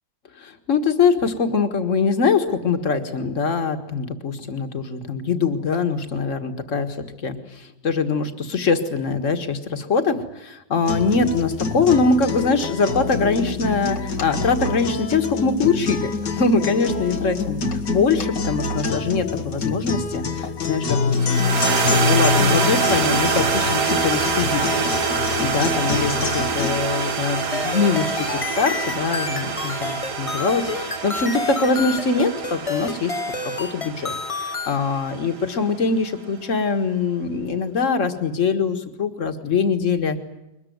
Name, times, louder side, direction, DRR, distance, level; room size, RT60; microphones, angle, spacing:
voice 1, 0.4-24.6 25.1-33.1 33.4-40.2, left 4 dB, 50° left, 7 dB, 2.1 m, -23 dB
sound 1, 10.8-26.8, left 4 dB, 85° left, 2.5 m, -26 dB
sound 2, 21.2-35.6, right 5 dB, 75° right, 2.2 m, -25 dB
sound 3, 27.5-34.8, left 4 dB, 25° left, 0.8 m, -29 dB
22.5 x 20.5 x 9.5 m, 0.91 s
omnidirectional pair, 1.8 m